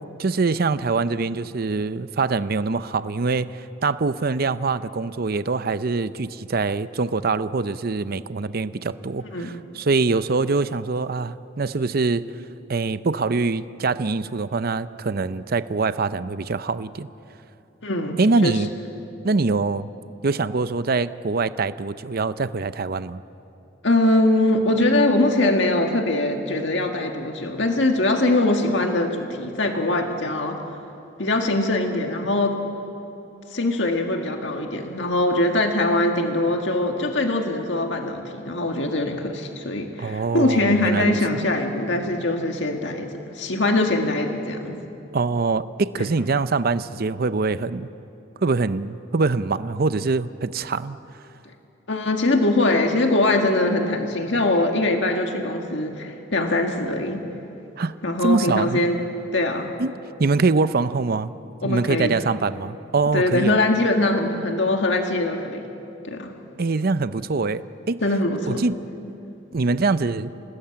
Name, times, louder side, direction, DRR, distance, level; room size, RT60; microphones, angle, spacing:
voice 1, 0.2-3.5 3.8-12.3 12.7-17.1 18.2-18.7 19.2-19.9 20.2-23.2 40.0-41.4 45.1-47.9 48.4-51.0 57.8-57.9 58.2-58.8 59.8-59.9 60.2-61.3 61.6-63.6 66.6-68.0 68.5-68.8 69.5-70.3, right 3 dB, 50° right, 13 dB, 0.6 m, -24 dB
voice 2, 17.8-18.6 23.8-30.6 31.2-32.6 33.5-44.8 46.0-46.1 51.9-57.2 58.0-59.0 59.3-59.7 61.6-62.2 63.1-65.6 66.0-66.3 68.0-68.6, left 2 dB, 70° left, 3 dB, 1.8 m, -22 dB
28.5 x 19.0 x 8.8 m, 2.8 s
head